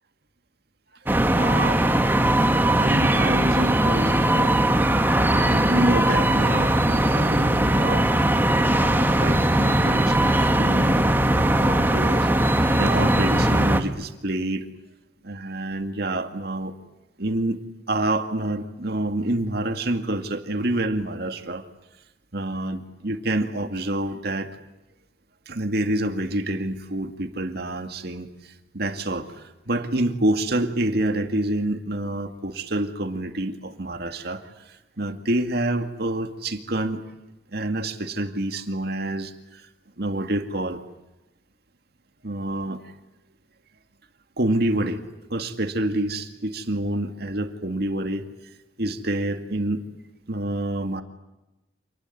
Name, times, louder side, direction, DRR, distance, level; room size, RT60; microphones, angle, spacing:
sound 1, 1.1-13.8, right 1 dB, 10° right, 1.7 m, -20 dB
voice 1, 1.3-1.8 2.2-4.6 5.2-8.1 8.6-14.7 15.2-16.7 17.2-17.6 17.9-21.6 22.3-24.6 25.5-37.0 37.5-39.7 40.0-40.8 42.2-42.8 44.4-45.0 45.3-48.3 48.8-49.8 50.3-51.0, right 1 dB, 60° right, 7 dB, 2.2 m, -27 dB
28.0 x 20.5 x 9.9 m, 0.97 s
head